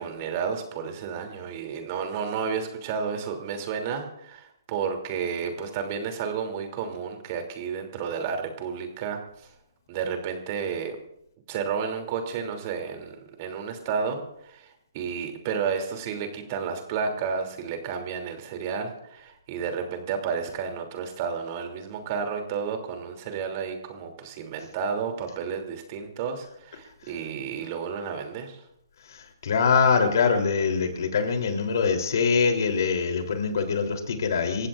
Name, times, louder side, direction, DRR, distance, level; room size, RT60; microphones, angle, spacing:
voice 1, 0.0-9.5 9.9-11.0 11.5-28.6, right 6 dB, 35° right, 4 dB, 3.0 m, -31 dB
voice 2, 29.1-34.7, left 5 dB, 60° left, 4 dB, 3.4 m, -24 dB
28.0 x 15.5 x 2.5 m, 0.80 s
hypercardioid pair, 150°, 2 cm